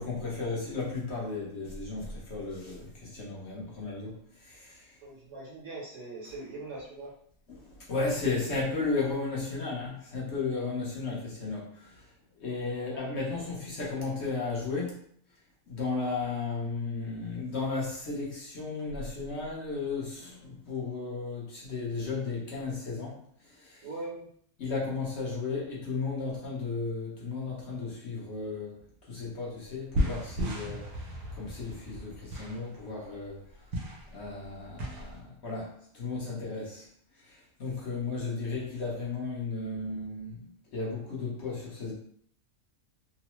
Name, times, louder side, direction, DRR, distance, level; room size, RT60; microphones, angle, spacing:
voice 1, 0.0-5.0 7.5-12.1 12.4-15.0 15.7-23.9 24.6-28.8 29.1-33.4 34.1-36.9 37.2-40.5 40.7-41.9, left 3 dB, 55° left, 1.0 m, -34 dB
voice 2, 5.0-7.1 23.8-24.3, right 2 dB, 65° right, 1.1 m, -41 dB
Rifles and Cannons Farther Off, 29.6-35.2, equal, 85° right, 1.2 m, -35 dB
3.0 x 2.0 x 2.9 m
omnidirectional pair, 1.5 m